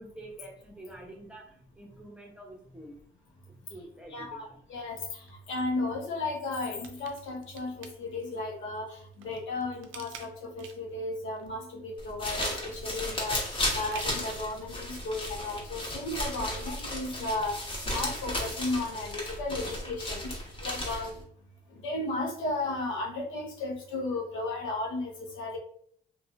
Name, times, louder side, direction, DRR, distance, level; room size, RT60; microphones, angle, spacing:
voice 1, 0.0-3.0 3.2-4.6, right 1 dB, 5° right, 0 dB, 0.8 m, -47 dB
voice 2, 4.1-21.1 21.8-25.6, left 2 dB, 80° left, 0 dB, 0.8 m, -34 dB
sound 1, 6.6-8.4 9.0-11.0 11.4-14.4 14.9-15.0, right 6 dB, 85° right, 0.5 m, -47 dB
sound 2, 12.0-21.2, left 1 dB, 25° left, 1.0 m, -35 dB
2.7 x 2.3 x 2.6 m, 0.63 s
cardioid pair, 90°, 20 cm